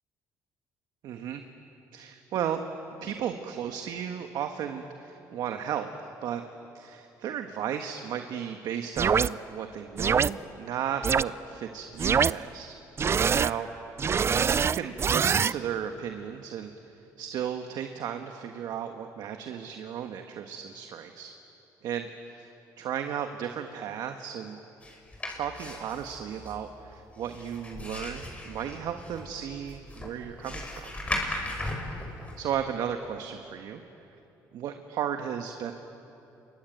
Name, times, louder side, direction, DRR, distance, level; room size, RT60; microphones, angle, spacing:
voice 1, 1.0-1.4 1.9-2.6 3.0-6.4 6.7-12.8 13.3-13.7 14.2-16.7 17.2-21.3 21.8-24.6 25.3-30.9 32.4-33.8 34.5-35.7, right 9 dB, 70° right, 6 dB, 1.5 m, -34 dB
sound 1, 9.0-9.3 10.0-10.3 11.0-11.2 12.0-12.3 13.0-13.5 14.0-15.5, right 6 dB, 35° right, 0.5 m, -23 dB
sound 2, 24.8-32.4, left 1 dB, 20° left, 6.5 m, -37 dB
28.0 x 23.5 x 9.1 m, 2.9 s
supercardioid pair, 85°, 7 cm